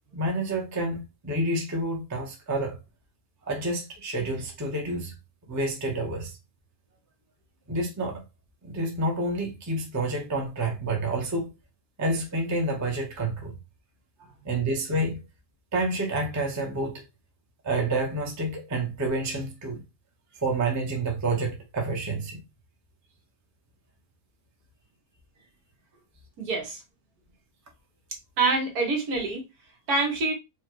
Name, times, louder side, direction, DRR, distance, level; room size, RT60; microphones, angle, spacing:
voice 1, 0.1-2.8 3.5-5.1 5.5-6.3 7.7-8.2 8.6-11.5 12.0-13.5 14.4-15.2 15.7-17.0 17.6-19.8 20.4-22.4, right 2 dB, 15° right, 0.6 m, -28 dB
voice 2, 26.4-26.8 28.4-29.4 29.9-30.3, right 3 dB, 65° right, 1.6 m, -25 dB
4.7 x 2.4 x 3.0 m
omnidirectional pair, 1.8 m